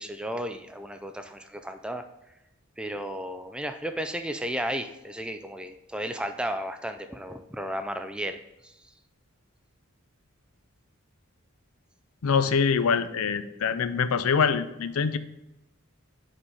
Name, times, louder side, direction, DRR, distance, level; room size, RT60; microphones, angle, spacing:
voice 1, 0.0-2.0 2.8-8.7, equal, 5° right, 8 dB, 0.3 m, -34 dB
voice 2, 12.2-15.2, left 6 dB, 80° left, 12 dB, 0.5 m, -24 dB
5.5 x 5.2 x 4.9 m, 0.94 s
head